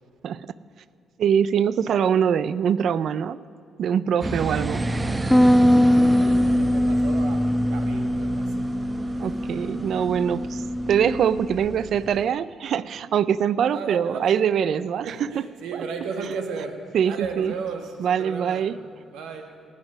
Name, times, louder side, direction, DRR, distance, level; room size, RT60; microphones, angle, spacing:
voice 1, 1.2-3.4 3.8-5.0 9.2-10.6 10.9-15.1 16.9-17.5 18.0-18.8, right 8 dB, 65° right, 17 dB, 0.4 m, -23 dB
sound 1, 4.2-12.3, right 2 dB, 20° right, 0.8 m, -30 dB
Bass guitar, 5.3-11.6, equal, 5° left, 0.4 m, -22 dB
voice 2, 5.9-8.7 13.7-14.4 15.0-18.7 19.1-19.5, right 5 dB, 90° right, 4 dB, 1.5 m, -35 dB
19.0 x 7.4 x 6.2 m, 2.4 s
cardioid pair, 90°, 0 cm